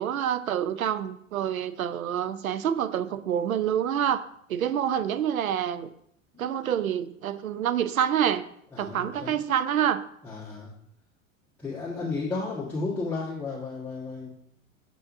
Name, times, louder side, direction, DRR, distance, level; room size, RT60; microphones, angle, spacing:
voice 1, 0.0-4.2 4.5-5.9 6.4-8.4 8.8-10.0, right 9 dB, 85° right, 13 dB, 0.5 m, -27 dB
voice 2, 8.7-9.4 10.2-10.7 11.6-14.3, left 3 dB, 5° left, -10 dB, 1.5 m, -33 dB
7.3 x 5.4 x 2.6 m, 0.72 s
figure-of-eight pair, 90°, 41 cm